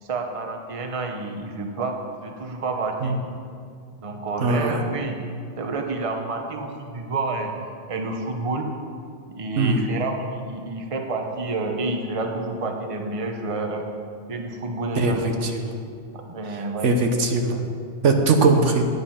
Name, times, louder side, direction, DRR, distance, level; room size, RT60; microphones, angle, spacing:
voice 1, 0.0-3.2 4.0-5.2 5.6-7.5 7.9-8.7 9.3-13.8 14.3-15.7 16.1-16.9, right 3 dB, 30° right, 3 dB, 0.9 m, -29 dB
voice 2, 4.4-4.8 9.6-9.9 15.0-15.7 16.8-17.7 18.0-18.8, right 3 dB, 70° right, 4 dB, 1.3 m, -20 dB
9.8 x 9.5 x 5.6 m, 2.3 s
omnidirectional pair, 1.3 m